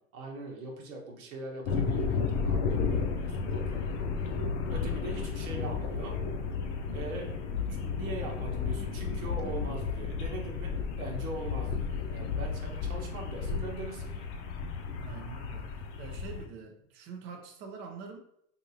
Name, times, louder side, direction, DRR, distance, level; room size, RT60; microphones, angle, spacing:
voice 1, 0.1-4.3 4.7-6.2 6.9-14.3, right 2 dB, 80° right, 0 dB, 1.1 m, -41 dB
sound 1, 1.6-16.5, left 5 dB, 60° left, 0.7 m, -33 dB
voice 2, 15.0-18.2, right 5 dB, 30° right, 3 dB, 0.5 m, -45 dB
3.6 x 2.6 x 2.7 m, 0.73 s
hypercardioid pair, 115°, 40 cm